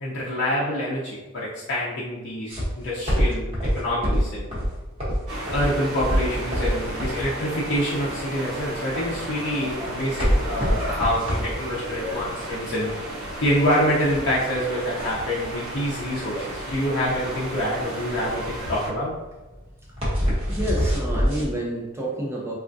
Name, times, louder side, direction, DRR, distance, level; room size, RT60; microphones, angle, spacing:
voice 1, 0.0-3.5 3.7-4.5 5.5-12.9 13.4-19.1, equal, 55° left, -8 dB, 0.6 m, -26 dB
sound 1, 2.5-21.5, equal, 25° right, 0.9 m, -26 dB
sound 2, 5.3-18.9, right 1 dB, 80° right, 0.9 m, -34 dB
voice 2, 20.5-22.5, right 1 dB, 10° right, -3 dB, 0.5 m, -29 dB
3.5 x 2.4 x 2.5 m, 1.2 s
head